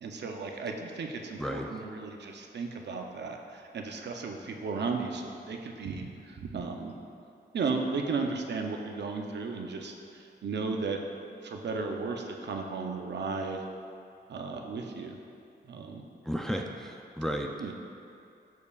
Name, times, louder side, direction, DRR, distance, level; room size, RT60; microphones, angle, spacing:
voice 1, 0.0-6.9 7.5-11.0 11.4-13.6 14.3-15.2 15.6-16.0 17.6-17.7, right 4 dB, 75° right, 2 dB, 0.6 m, -35 dB
voice 2, 1.4-1.7 16.2-17.5, equal, 5° left, 2 dB, 0.4 m, -33 dB
12.0 x 4.7 x 2.4 m, 2.7 s
wide cardioid pair, 150°, 18 cm